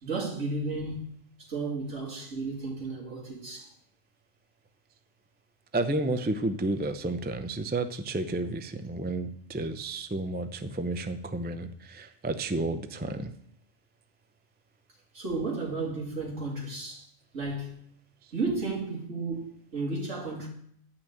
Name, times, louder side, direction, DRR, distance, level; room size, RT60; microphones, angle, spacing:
voice 1, 0.0-1.1 1.4-3.7 15.1-17.1 17.3-17.8 18.3-20.5, right 3 dB, 75° right, 3.0 m, -33 dB
voice 2, 5.7-13.3, right 2 dB, 15° right, 0.3 m, -31 dB
10.5 x 5.9 x 7.9 m
omnidirectional pair, 1.3 m